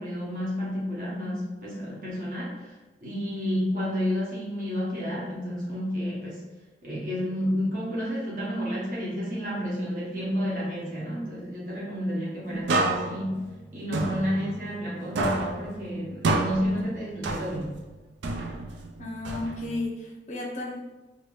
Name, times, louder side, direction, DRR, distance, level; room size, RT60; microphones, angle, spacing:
voice 1, 0.0-2.7 3.0-6.4 6.8-13.4 13.7-17.8, equal, 50° right, -6 dB, 1.0 m, -30 dB
sound 1, 12.7-14.9 15.2-17.8 18.2-19.9, right 2 dB, 85° right, 0.4 m, -29 dB
voice 2, 19.0-20.9, left 2 dB, 40° left, -2 dB, 0.5 m, -34 dB
2.9 x 2.5 x 3.1 m, 1.1 s
head